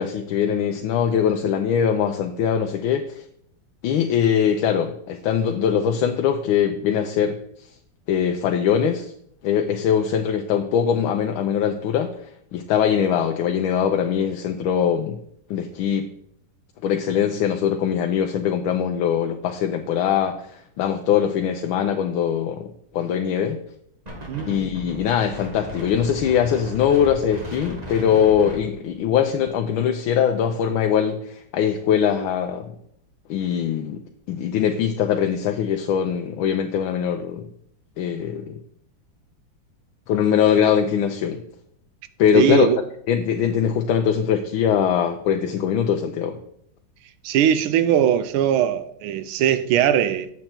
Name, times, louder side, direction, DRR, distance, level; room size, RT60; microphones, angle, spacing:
voice 1, 0.0-3.2 3.8-7.4 8.1-9.1 9.4-12.1 12.5-15.2 15.5-16.1 16.8-20.5 20.8-22.7 22.9-23.6 24.5-32.7 33.3-34.0 34.3-37.5 38.0-38.6 40.1-41.4 42.2-42.7 43.1-46.4, left 8 dB, 85° left, 1.5 m, -22 dB
Wind, 24.1-29.6, equal, 20° right, 1.5 m, -37 dB
voice 2, 24.3-24.6 42.3-42.8 47.2-50.3, right 10 dB, 90° right, 1.5 m, -20 dB
7.8 x 7.2 x 4.4 m
omnidirectional pair, 2.2 m